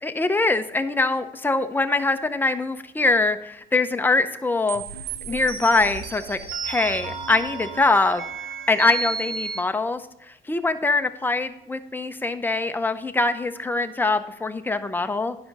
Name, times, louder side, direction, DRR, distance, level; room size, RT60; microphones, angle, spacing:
voice 1, 0.0-4.8 5.3-6.4 6.6-8.2 8.7-10.0 10.5-15.4, left 3 dB, 10° left, 8 dB, 0.6 m, -23 dB
sound 1, 4.7-9.6, right 5 dB, 70° right, 1.0 m, -33 dB
10.0 x 6.0 x 4.0 m, 0.83 s
cardioid pair, 110°, 17 cm